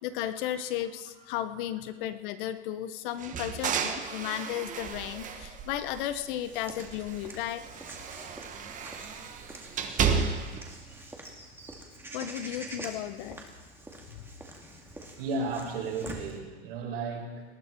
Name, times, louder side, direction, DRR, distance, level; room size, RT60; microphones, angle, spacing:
voice 1, 0.0-7.6 12.1-13.4 14.1-14.2, left 11 dB, 50° left, 11 dB, 1.1 m, -34 dB
sound 1, 3.2-6.4 6.7-10.7, right 6 dB, 25° right, 1.4 m, -33 dB
Walk footsteps / Bird vocalization bird call bird song, 6.4-16.4, right 1 dB, 5° right, 2.1 m, -46 dB
voice 2, 15.2-17.4, right 3 dB, 65° right, 0 dB, 5.6 m, -34 dB
19.5 x 14.0 x 4.6 m, 1.3 s
supercardioid pair, 135°, 33 cm